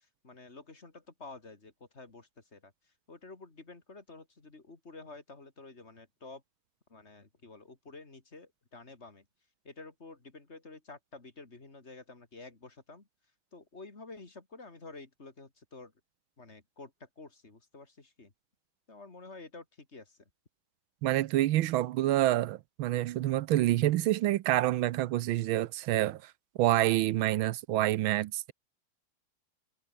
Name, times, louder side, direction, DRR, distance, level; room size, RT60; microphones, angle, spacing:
voice 1, 0.0-2.7 3.1-6.4 6.9-9.2 9.6-13.1 13.5-15.9 16.4-18.3 18.9-20.2, left 3 dB, 30° left, 3.2 m, -50 dB
voice 2, 21.0-26.3 26.6-28.5, right 14 dB, 75° right, 1.5 m, -27 dB
omnidirectional pair, 2.3 m